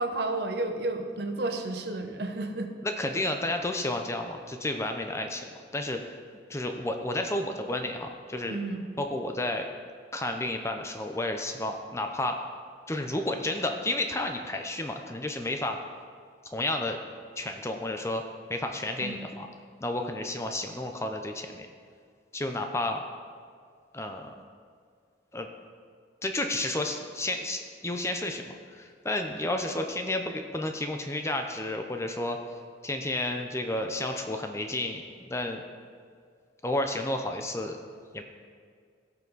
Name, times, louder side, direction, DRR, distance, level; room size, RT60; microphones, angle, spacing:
voice 1, 0.0-2.7 8.5-8.9 19.0-19.3, right 2 dB, 60° right, 5 dB, 0.9 m, -32 dB
voice 2, 2.8-5.4 5.7-6.0 6.5-8.6 9.0-9.7 10.1-12.4 12.9-15.8 16.5-17.0 17.4-18.2 18.5-19.5 19.8-21.7 22.3-23.0 23.9-24.3 25.3-25.5 26.2-32.4 32.8-35.6 36.6-37.8 38.1-38.2, left 1 dB, 15° left, 5 dB, 0.6 m, -31 dB
16.5 x 5.8 x 4.0 m, 2.1 s
head